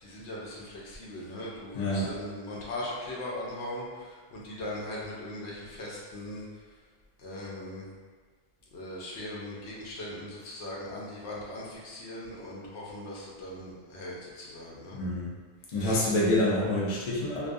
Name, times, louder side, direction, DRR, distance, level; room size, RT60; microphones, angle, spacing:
voice 1, 0.0-6.4 7.2-7.9 8.7-15.0 15.7-16.0, left 1 dB, 85° left, -5 dB, 0.9 m, -39 dB
voice 2, 1.7-2.1 14.9-15.3 15.7-17.5, left 1 dB, 50° left, -6 dB, 0.4 m, -27 dB
2.4 x 2.2 x 2.5 m, 1.5 s
omnidirectional pair, 1.1 m